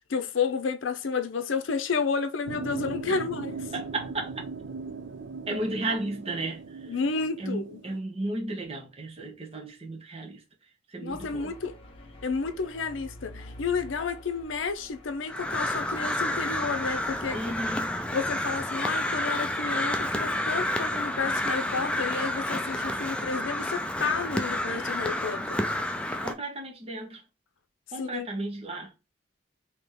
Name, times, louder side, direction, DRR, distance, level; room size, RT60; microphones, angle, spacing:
voice 1, 0.0-3.6 6.9-7.8 11.0-11.8 12.2-17.4 18.1-25.7 28.0-28.3, left 5 dB, 80° left, 0.6 m, -31 dB
sound 1, 2.5-8.0, right 4 dB, 70° right, 0.5 m, -39 dB
voice 2, 3.7-4.3 5.5-6.6 7.4-10.4 10.9-11.5 17.3-18.0 26.2-27.2 27.9-28.9, right 2 dB, 30° right, 1.0 m, -34 dB
sound 2, 11.1-18.6, left 1 dB, 30° left, 1.0 m, -47 dB
Crow, 15.3-26.3, left 1 dB, 5° left, 0.4 m, -30 dB
3.7 x 2.9 x 3.4 m
head